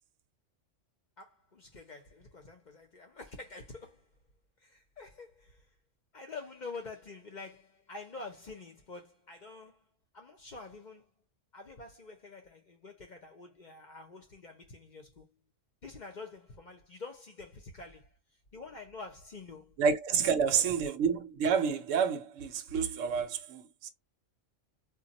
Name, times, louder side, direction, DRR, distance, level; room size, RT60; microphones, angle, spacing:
voice 1, 1.2-4.1 4.6-5.7 6.1-9.9 10.1-11.1 11.5-15.3 15.8-18.1 18.5-19.8 20.2-20.6, left 3 dB, 45° left, 0.7 m, -47 dB
voice 2, 19.8-23.9, right 6 dB, 80° right, 1.0 m, -29 dB
2.2 x 2.2 x 3.8 m
omnidirectional pair, 1.3 m